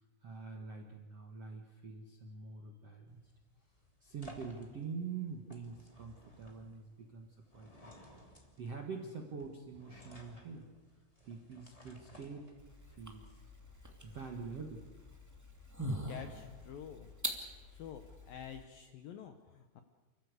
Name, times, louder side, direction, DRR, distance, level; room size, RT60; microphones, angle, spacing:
voice 1, 0.2-3.2 4.0-7.3 7.5-7.9 8.6-10.7 11.2-12.5 12.9-13.4 14.0-14.9, right 5 dB, 60° right, 2 dB, 1.6 m, -45 dB
sound 1, 3.1-12.9, equal, 10° left, 1.9 m, -58 dB
sound 2, 12.6-18.6, right 1 dB, 10° right, 0.9 m, -44 dB
voice 2, 15.9-17.1 17.7-19.8, left 8 dB, 75° left, 7 dB, 2.2 m, -48 dB
29.5 x 14.5 x 8.3 m, 1.3 s
omnidirectional pair, 5.3 m